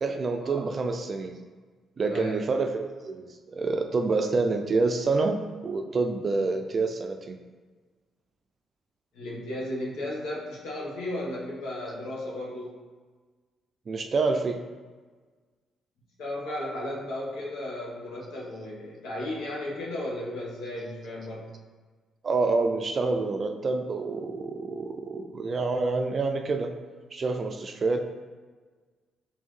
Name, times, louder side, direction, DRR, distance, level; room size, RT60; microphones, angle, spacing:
voice 1, 0.0-1.4 2.0-7.4 13.9-14.6 22.2-26.7 27.1-28.0, right 3 dB, 40° right, 5 dB, 0.4 m, -27 dB
voice 2, 2.0-2.3 9.1-12.7 16.2-21.5, left 1 dB, 90° left, -4 dB, 1.2 m, -35 dB
4.3 x 3.4 x 3.2 m, 1.4 s
cardioid pair, 90°, 0 cm